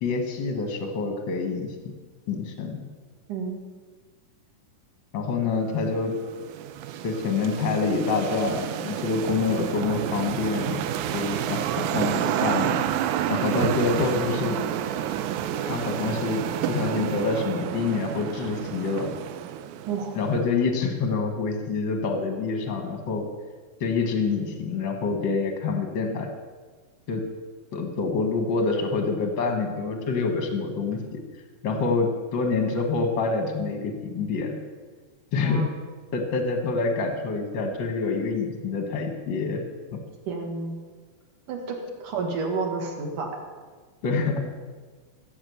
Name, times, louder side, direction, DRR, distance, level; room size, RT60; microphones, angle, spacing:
voice 1, 0.0-1.7 2.3-2.8 5.1-6.1 7.0-10.8 11.1-12.8 13.3-14.6 15.6-19.1 20.1-23.3 23.8-26.3 27.1-27.2 27.7-31.0 31.6-34.6 35.3-35.6 36.1-39.6 39.9-40.0 44.0-44.4, left 4 dB, 60° left, 4 dB, 1.3 m, -26 dB
sound 1, 5.8-20.3, right 10 dB, 85° right, 1.7 m, -29 dB
voice 2, 35.3-35.7 40.3-40.8 41.5-43.3, right 4 dB, 60° right, 1 dB, 3.0 m, -30 dB
16.0 x 7.8 x 6.9 m, 1.4 s
omnidirectional pair, 4.2 m